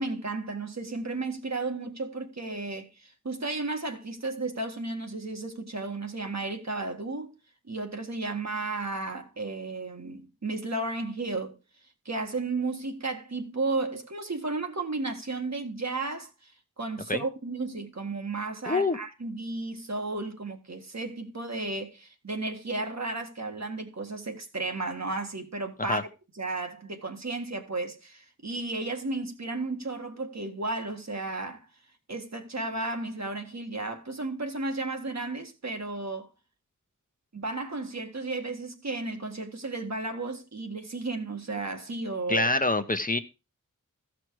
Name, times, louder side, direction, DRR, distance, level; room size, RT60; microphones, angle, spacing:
voice 1, 0.0-7.3 7.7-11.5 12.1-16.5 16.8-26.0 26.4-31.7 32.1-36.3 37.3-42.5, right 3 dB, 55° right, 1.8 m, -33 dB
voice 2, 18.7-19.0 25.8-26.0 42.3-43.2, left 2 dB, 25° left, 0.9 m, -25 dB
14.5 x 6.1 x 4.7 m
wide cardioid pair, 75°, 32 cm